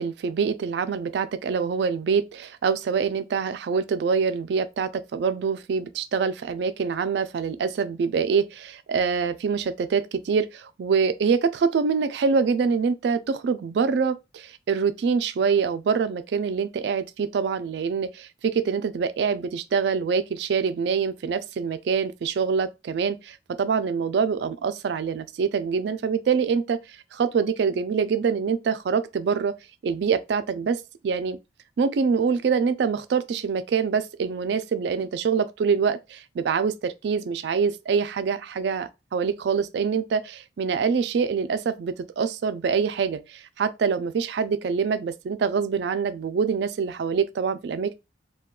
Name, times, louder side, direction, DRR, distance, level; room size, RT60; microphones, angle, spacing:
voice 1, 0.0-29.5 29.8-31.4 31.8-47.9, right 5 dB, 65° right, 0.3 m, -25 dB
2.3 x 2.2 x 3.6 m
head